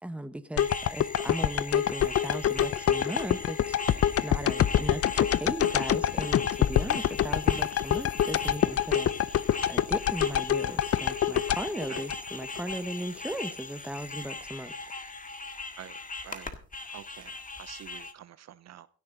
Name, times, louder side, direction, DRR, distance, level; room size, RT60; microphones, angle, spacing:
voice 1, 0.0-9.4 9.7-14.7, right 1 dB, 5° right, 1.2 m, -37 dB
sound 1, 0.6-12.7 13.2-13.3, left 10 dB, 50° left, 0.6 m, -26 dB
sound 2, 0.6-18.1, left 3 dB, 25° left, 1.8 m, -40 dB
voice 2, 16.9-18.9, right 11 dB, 60° right, 0.7 m, -47 dB
16.5 x 13.0 x 3.9 m
cardioid pair, 90°, 30 cm